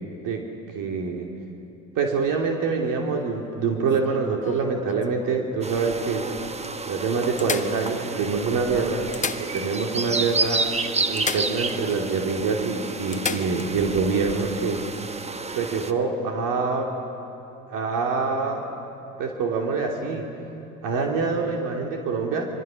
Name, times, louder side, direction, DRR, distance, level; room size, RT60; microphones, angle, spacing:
voice 1, 0.7-1.3 1.9-6.3 6.9-9.1 9.4-10.6 11.1-14.9 15.5-16.9 17.7-18.7 19.2-20.3 20.8-22.5, right 4 dB, 55° right, 2 dB, 2.7 m, -25 dB
sound 1, 3.9-5.5 6.2-6.3 6.5-6.6 7.4-8.4 9.0-10.0 10.2-10.3 11.2-12.0 12.4-12.5 13.1-13.7 15.7-15.8, left 5 dB, 20° left, 1.2 m, -33 dB
sound 2, 5.6-15.9, right 3 dB, 15° right, 1.1 m, -30 dB
26.0 x 23.5 x 6.3 m, 2.8 s
hypercardioid pair, 65°, 39 cm